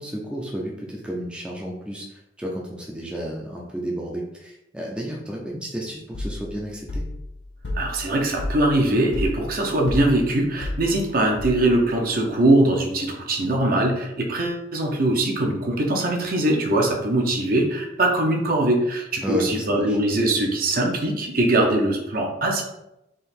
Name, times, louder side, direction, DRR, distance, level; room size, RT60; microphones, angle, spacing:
voice 1, 0.0-7.1 19.2-20.0, equal, 5° right, -2 dB, 0.5 m, -32 dB
sound 1, 6.1-11.9, left 1 dB, 70° left, 0.8 m, -32 dB
voice 2, 7.7-22.6, right 1 dB, 50° right, 1 dB, 0.8 m, -22 dB
3.7 x 3.0 x 4.3 m, 0.87 s
head